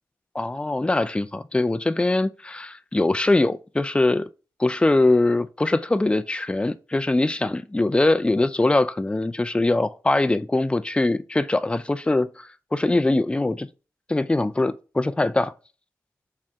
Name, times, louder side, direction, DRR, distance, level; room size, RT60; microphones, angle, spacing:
voice 1, 0.3-4.2 4.6-13.7 14.1-15.5, left 2 dB, 15° left, 0.3 m, -22 dB
3.8 x 2.2 x 3.5 m
cardioid pair, 45°, 7 cm